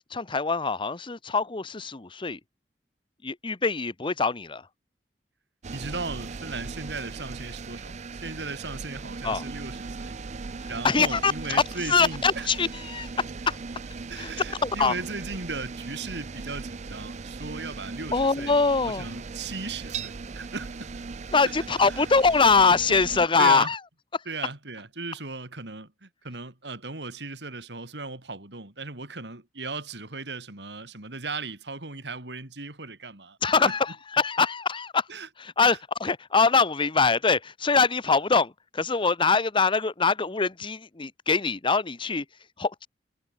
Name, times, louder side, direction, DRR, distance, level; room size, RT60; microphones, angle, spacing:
voice 1, 0.1-2.4 3.2-4.7 9.2-9.4 10.6-13.6 14.2-14.9 18.1-19.1 21.3-23.8 24.1-24.2 33.4-35.1 35.4-42.2 42.6-42.9, left 4 dB, 30° left, 0.9 m, -23 dB
sound 1, 5.6-23.3, right 4 dB, 40° right, 0.5 m, -38 dB
voice 2, 5.7-10.1 10.7-12.5 14.1-18.6 18.8-21.0 21.9-22.0 23.4-23.7 24.2-33.7 35.1-35.3 35.7-35.8, right 3 dB, 75° right, 3.3 m, -37 dB
head